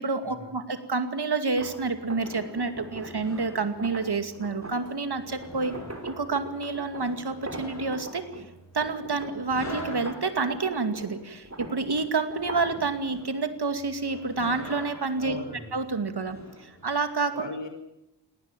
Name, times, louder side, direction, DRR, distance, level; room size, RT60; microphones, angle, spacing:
voice 1, 0.0-5.8 6.0-8.4 8.7-15.4 15.7-17.5, right 4 dB, 65° right, 9 dB, 2.4 m, -29 dB
sound 1, 1.6-16.9, equal, 40° left, 6.9 m, -45 dB
sound 2, 1.6-8.5 8.8-13.0, right 1 dB, 35° right, 3.6 m, -41 dB
voice 2, 15.2-15.7 17.3-17.7, left 2 dB, 85° left, 6 dB, 5.2 m, -39 dB
19.0 x 18.5 x 9.0 m, 0.87 s
wide cardioid pair, 80°, 43 cm